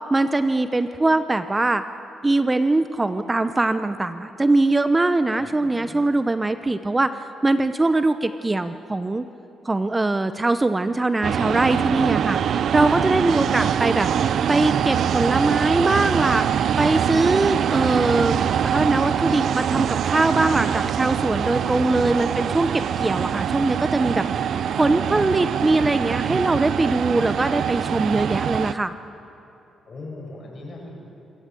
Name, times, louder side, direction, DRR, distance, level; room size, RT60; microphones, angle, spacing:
voice 1, 0.1-1.8 2.2-9.3 9.6-12.4 12.7-14.1 14.5-16.4 16.8-18.4 18.6-24.2 24.8-28.9, right 2 dB, 20° right, 10 dB, 0.7 m, -21 dB
voice 2, 5.4-5.9 11.8-12.3 21.3-22.2 24.7-25.1 29.9-30.9, left 2 dB, 45° left, -1 dB, 7.3 m, -41 dB
sound 1, 11.2-28.7, right 8 dB, 70° right, 0.5 m, -23 dB
27.5 x 15.0 x 7.7 m, 2.9 s
cardioid pair, 80°, 0 cm